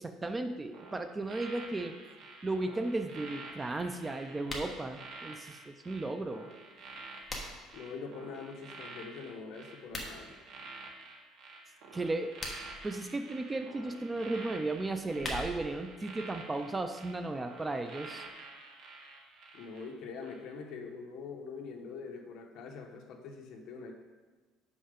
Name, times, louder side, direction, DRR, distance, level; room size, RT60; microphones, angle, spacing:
voice 1, 0.0-1.9 2.4-6.5 11.9-12.3 12.8-18.2, right 2 dB, 15° right, 7 dB, 0.3 m, -35 dB
sound 1, 0.7-19.9 20.2-20.5, right 3 dB, 50° right, 1.2 m, -49 dB
sound 2, 4.4-4.8 6.8-7.8 9.8-10.1 12.2-12.8 14.8-15.8, left 1 dB, 10° left, 1.1 m, -41 dB
voice 2, 7.7-10.3 19.5-23.9, left 5 dB, 55° left, 3 dB, 0.9 m, -44 dB
6.5 x 5.6 x 5.0 m, 1.3 s
cardioid pair, 165°, 0 cm